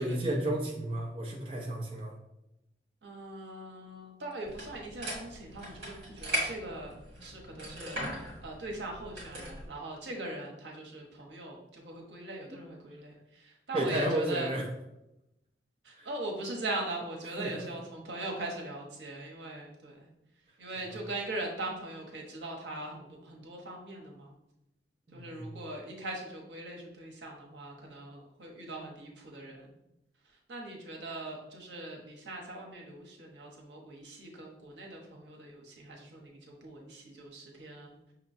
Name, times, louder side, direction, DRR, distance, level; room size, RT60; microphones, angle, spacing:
voice 1, 0.0-2.2 12.5-12.6 13.7-14.6 15.9-16.1 17.4-17.7 20.9-21.0 25.1-25.6, right 1 dB, 30° right, -2 dB, 0.6 m, -32 dB
voice 2, 3.0-6.9 7.2-14.5 15.8-20.1 20.6-24.4 25.1-29.7 30.5-38.0, right 2 dB, 80° right, -1 dB, 1.0 m, -41 dB
sound 1, 4.4-9.7, equal, 60° right, 1.4 m, -39 dB
5.7 x 2.9 x 2.6 m, 0.88 s
head